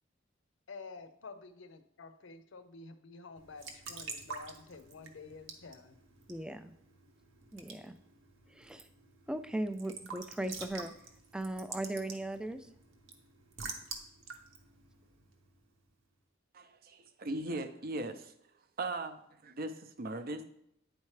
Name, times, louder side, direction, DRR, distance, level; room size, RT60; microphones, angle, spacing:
voice 1, 0.7-6.0, left 4 dB, 70° left, 10 dB, 0.6 m, -50 dB
Raindrop / Drip / Trickle dribble, 3.4-15.8, right 4 dB, 75° right, 0.9 m, -48 dB
voice 2, 6.3-6.7 7.5-7.9 8.5-8.8 9.3-10.9 11.3-12.7, right 1 dB, 5° right, 10 dB, 0.3 m, -38 dB
voice 3, 16.5-18.3 18.8-20.4, right 2 dB, 50° right, 10 dB, 0.6 m, -39 dB
9.3 x 4.3 x 3.2 m, 0.75 s
head